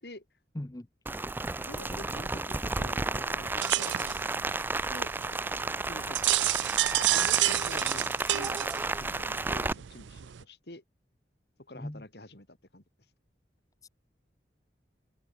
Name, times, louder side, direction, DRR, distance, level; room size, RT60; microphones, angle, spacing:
voice 1, 0.6-0.9 11.7-12.0 13.8-13.9, left 1 dB, 20° left, 0.7 m, -38 dB
Rain, 1.1-9.7, right 3 dB, 10° right, 0.3 m, -32 dB
voice 2, 1.7-4.2 4.9-5.1 5.9-10.8 11.7-12.8, left 1 dB, 65° left, 3.4 m, -47 dB
sound 1, 3.6-10.4, right 14 dB, 90° right, 0.5 m, -30 dB
head